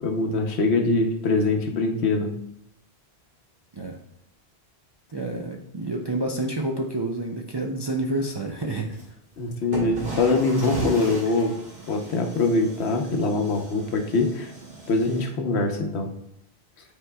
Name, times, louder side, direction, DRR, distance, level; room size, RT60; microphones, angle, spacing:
voice 1, 0.0-2.3 9.4-11.5 11.9-14.5 14.9-16.1, left 3 dB, 80° left, 4 dB, 1.1 m, -23 dB
voice 2, 5.1-9.0, right 2 dB, 40° right, 0 dB, 0.4 m, -29 dB
sound 1, 8.9-9.0 9.7-15.3, right 2 dB, 70° right, 1.9 m, -36 dB
9.0 x 4.7 x 2.3 m, 0.75 s
omnidirectional pair, 1.1 m